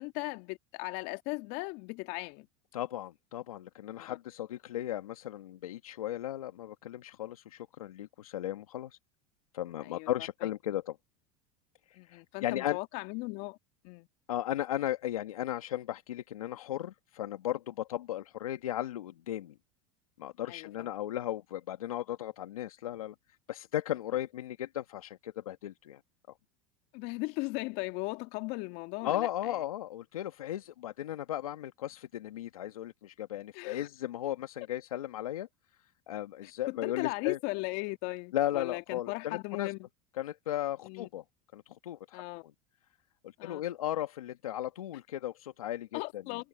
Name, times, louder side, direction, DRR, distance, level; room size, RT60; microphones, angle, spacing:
voice 1, 0.0-2.5 4.0-4.2 9.8-10.1 10.4-10.5 12.0-13.6 13.8-14.1 20.5-20.9 26.9-29.6 33.5-33.9 36.4-39.9 40.8-41.1 42.1-42.4 43.4-43.6 45.9-46.4, left 25 dB, 65° left, 2.2 m, -37 dB
voice 2, 2.7-9.0 9.5-11.0 11.9-12.8 14.3-19.5 20.2-23.1 23.5-26.0 29.0-35.5 36.1-37.4 38.3-39.7 40.2-41.2 41.5-42.2 43.2-46.0, left 12 dB, 90° left, 1.5 m, -36 dB
hypercardioid pair, 90°, 18 cm